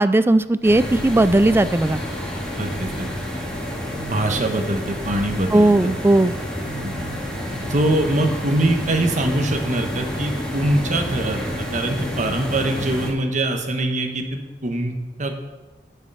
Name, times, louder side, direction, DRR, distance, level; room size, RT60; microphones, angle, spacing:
voice 1, 0.0-2.0 5.5-6.3, right 2 dB, 15° right, 14 dB, 0.3 m, -16 dB
sound 1, 0.6-13.1, equal, 5° left, 1.8 m, -29 dB
voice 2, 2.6-3.1 4.0-5.9 6.8-6.9 7.7-15.4, right 1 dB, 45° right, 5 dB, 1.2 m, -23 dB
9.2 x 7.3 x 5.6 m, 1.2 s
head